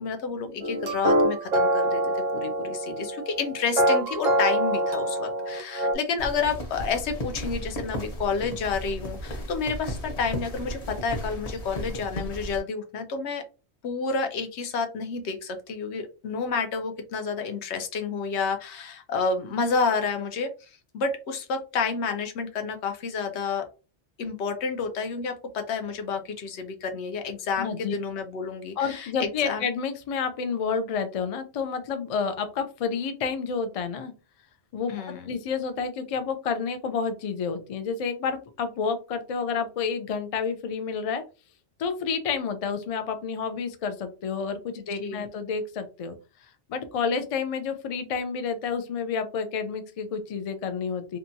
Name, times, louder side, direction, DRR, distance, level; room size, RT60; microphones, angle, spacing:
voice 1, 0.0-13.4 13.8-20.5 20.9-23.6 24.2-29.6 34.9-35.3 44.8-45.2, left 5 dB, 80° left, 6 dB, 0.9 m, -30 dB
sound 1, 0.6-5.9, right 1 dB, 55° right, 0.5 m, -25 dB
sound 2, 6.2-12.6, equal, 40° left, 0.7 m, -35 dB
voice 2, 27.6-27.9 28.8-34.1 34.7-35.0 35.3-41.2 41.8-46.2 46.7-51.2, left 5 dB, 60° left, 8 dB, 0.4 m, -29 dB
2.8 x 2.2 x 2.6 m, 0.32 s
omnidirectional pair, 1.1 m